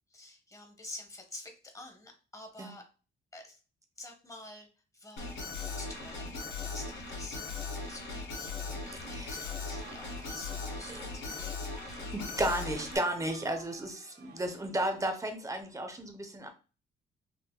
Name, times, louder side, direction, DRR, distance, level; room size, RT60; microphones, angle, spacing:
voice 1, 0.1-2.9 3.3-3.6 4.0-4.7 4.9-12.0, left 2 dB, 15° left, 4 dB, 0.9 m, -49 dB
Alarm, 5.2-13.0, left 4 dB, 65° left, 1.5 m, -39 dB
voice 2, 9.1-9.4 10.9-11.1 12.1-16.5, right 1 dB, 15° right, 6 dB, 0.7 m, -33 dB
Crowd, 9.4-15.6, right 5 dB, 55° right, 0.8 m, -56 dB
3.7 x 2.7 x 2.2 m, 0.34 s
cardioid pair, 90°, 20 cm